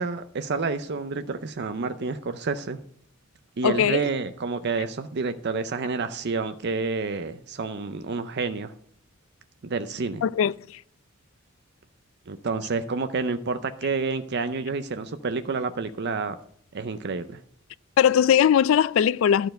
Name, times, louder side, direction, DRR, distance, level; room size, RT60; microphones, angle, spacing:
voice 1, 0.0-2.8 3.6-8.7 9.6-10.2 12.3-16.4 16.7-17.4, right 4 dB, 55° right, 0.6 m, -29 dB
voice 2, 3.6-4.0 10.2-10.8 18.0-19.5, left 8 dB, 70° left, 0.3 m, -20 dB
12.5 x 4.6 x 7.6 m
head